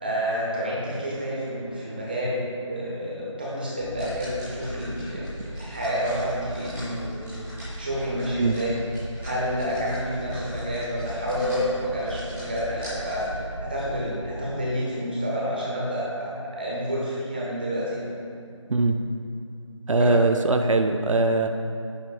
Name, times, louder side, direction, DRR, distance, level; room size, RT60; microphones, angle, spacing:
voice 1, 0.0-7.5 7.8-8.7 9.2-18.0 19.9-20.1, equal, 20° right, -6 dB, 1.2 m, -29 dB
sound 1, 3.8-14.0, equal, 5° left, 0.7 m, -37 dB
voice 2, 18.7-19.0 19.9-21.5, right 2 dB, 85° right, 6 dB, 0.6 m, -21 dB
11.0 x 9.3 x 2.3 m, 2.5 s
figure-of-eight pair, 175°, 16 cm